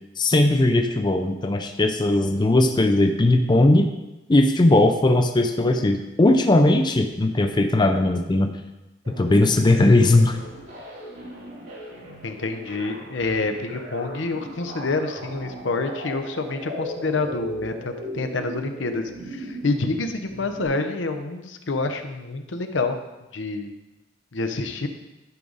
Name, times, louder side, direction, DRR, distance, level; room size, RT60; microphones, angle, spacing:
voice 1, 0.2-3.9 4.3-8.5 9.1-10.4, left 2 dB, 25° left, 6 dB, 0.5 m, -18 dB
sound 1, 9.0-20.7, equal, 70° right, 2.7 m, -38 dB
voice 2, 12.2-23.0 23.3-23.7 24.3-24.9, left 3 dB, 80° left, 7 dB, 0.8 m, -27 dB
11.0 x 5.0 x 4.0 m, 1.0 s
head